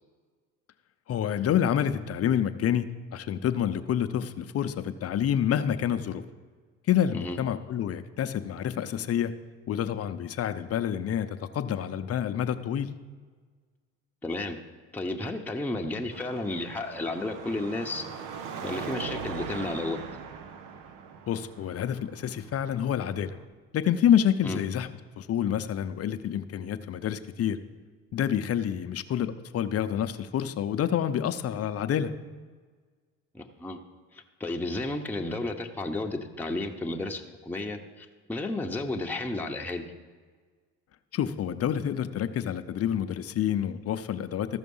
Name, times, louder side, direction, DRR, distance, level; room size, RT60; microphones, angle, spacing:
voice 1, 1.1-6.2 6.9-9.3 9.7-12.9 21.3-23.4 23.7-24.9 25.2-27.6 28.1-32.1 41.1-44.6, left 9 dB, 45° left, 10 dB, 0.7 m, -28 dB
voice 2, 14.2-14.6 14.9-18.0 18.6-20.0 24.4-24.6 33.3-33.8 34.1-39.9, left 2 dB, 5° left, 1 dB, 0.9 m, -32 dB
Car passing by / Traffic noise roadway noise / Engine, 16.1-23.4, right 6 dB, 70° right, 1.0 m, -40 dB
14.0 x 5.8 x 5.5 m, 1.5 s
supercardioid pair, 75°, 33 cm